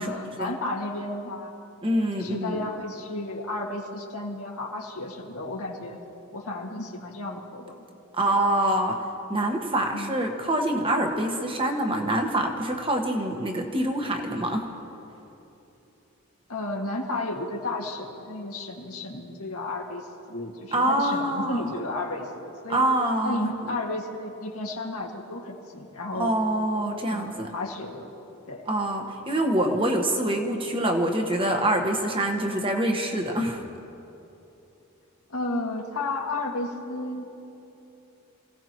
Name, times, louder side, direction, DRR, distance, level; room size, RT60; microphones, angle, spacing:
voice 1, 0.0-1.5 2.2-6.0 6.3-7.8 8.2-8.5 9.9-10.2 16.5-22.9 23.2-26.3 27.1-28.1 28.5-28.7 35.3-37.4, left 2 dB, 80° left, 0 dB, 2.0 m, -33 dB
voice 2, 1.8-2.7 8.2-9.0 9.3-14.6 20.7-21.7 22.7-23.5 26.1-27.5 28.7-33.6, right 1 dB, 25° right, 3 dB, 1.3 m, -25 dB
27.5 x 17.0 x 3.0 m, 2.9 s
head